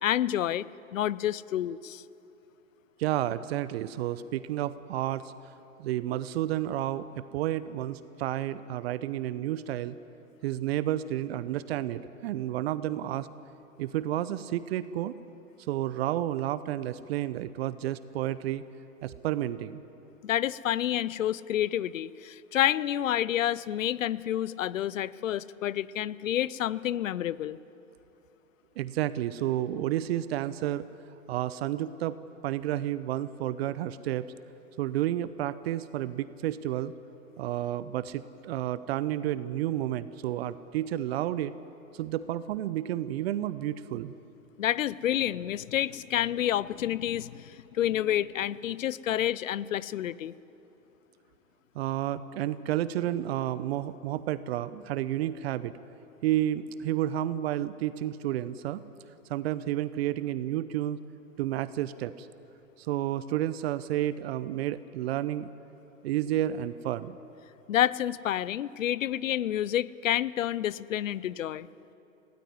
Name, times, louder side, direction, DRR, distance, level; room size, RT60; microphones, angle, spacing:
voice 1, 0.0-0.7 0.9-2.0 20.2-27.6 44.6-50.3 67.7-71.7, left 12 dB, 70° left, 20 dB, 0.7 m, -29 dB
voice 2, 3.0-5.5 5.8-9.9 10.4-13.3 13.8-15.1 15.7-18.6 19.0-19.8 28.8-30.9 31.3-34.3 34.8-36.9 37.4-41.5 41.9-44.1 51.7-55.8 56.2-58.8 59.3-61.0 61.4-62.3 62.8-65.5 66.0-67.2, right 13 dB, 50° right, 16 dB, 0.7 m, -31 dB
19.0 x 17.5 x 9.8 m, 2.8 s
hypercardioid pair, 110°, 40 cm